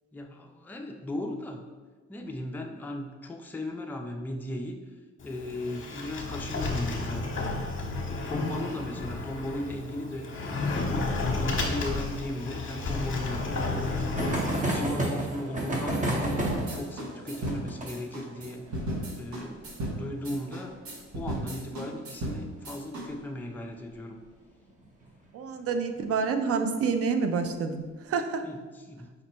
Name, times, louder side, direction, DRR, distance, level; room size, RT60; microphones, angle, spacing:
voice 1, 0.1-1.6 2.1-4.8 5.2-7.2 8.3-16.4 16.7-18.8 19.2-20.7 21.1-24.2 28.4-29.2, left 1 dB, 5° left, 2 dB, 0.4 m, -37 dB
Sliding door, 5.2-14.6, left 3 dB, 40° left, 0.8 m, -32 dB
sound 1, 13.1-22.3 22.6-22.7 22.9-23.0 23.3-23.4 24.8-25.1 25.7-26.2, right 1 dB, 25° right, 0.9 m, -33 dB
sound 2, 16.3-23.0, right 1 dB, 70° right, 1.1 m, -35 dB
voice 2, 25.3-28.4, right 5 dB, 50° right, 7 dB, 0.5 m, -28 dB
5.1 x 2.1 x 4.2 m, 1.3 s
cardioid pair, 90°, 30 cm